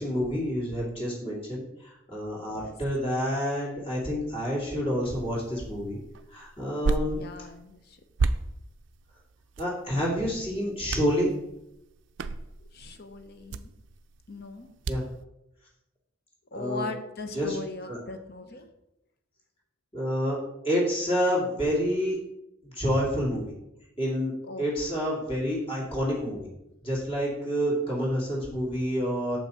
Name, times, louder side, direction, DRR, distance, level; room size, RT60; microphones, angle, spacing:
voice 1, 0.0-6.0 6.3-7.2 9.6-11.3 14.9-15.0 16.5-16.9 17.3-17.6 17.9-18.0 19.9-20.4 20.6-22.2 22.7-23.5 24.0-24.3 24.6-26.5 26.8-29.4, equal, 25° left, -4 dB, 2.4 m, -28 dB
voice 2, 2.4-2.7 7.1-8.0 12.6-13.7 14.3-14.7 16.5-18.7 24.4-24.7, left 3 dB, 50° left, 7 dB, 0.8 m, -39 dB
sound 1, 5.0-15.2, right 3 dB, 65° right, 0.4 m, -35 dB
7.0 x 5.8 x 4.2 m, 0.87 s
head